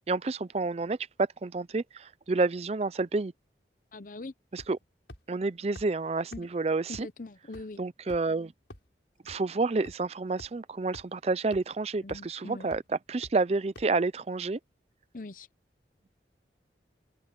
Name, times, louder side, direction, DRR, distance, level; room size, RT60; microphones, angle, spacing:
voice 1, 0.1-1.0 1.4-3.3 4.5-4.8 5.3-7.1 7.8-8.5 9.3-12.8 13.1-14.6, right 3 dB, 35° right, 0.4 m, -29 dB
voice 2, 3.9-4.3 6.3-6.5 6.9-7.8 12.0-12.7 15.1-15.5, left 2 dB, 45° left, 0.7 m, -42 dB
sound 1, 4.6-4.8 5.1-5.2 5.8-5.9 6.3-6.4 6.9-7.0 7.5-7.6 8.1-8.3 8.7-8.8 9.3-9.4 9.9-10.0 10.4-10.5 10.9-11.0 11.5-11.6 12.1-12.3 12.7-12.8 13.2-13.3 13.8-13.9, left 1 dB, 85° left, 4.9 m, -45 dB
head